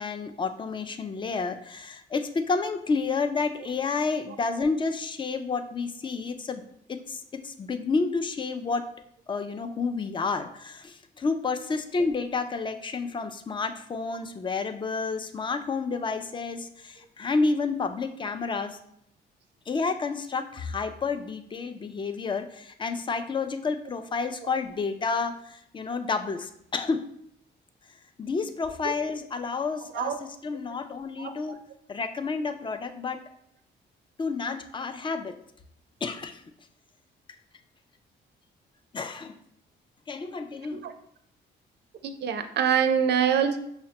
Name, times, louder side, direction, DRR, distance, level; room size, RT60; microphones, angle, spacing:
voice 1, 0.0-6.6 6.9-8.8 9.3-18.8 19.7-27.1 28.2-31.6 31.9-33.2 34.2-35.4 36.0-36.4 38.9-39.4 40.1-40.9, left 4 dB, 25° left, 8 dB, 0.3 m, -30 dB
voice 2, 42.0-43.6, right 8 dB, 60° right, 8 dB, 0.5 m, -25 dB
5.6 x 2.1 x 2.8 m, 0.70 s
cardioid pair, 90°, 20 cm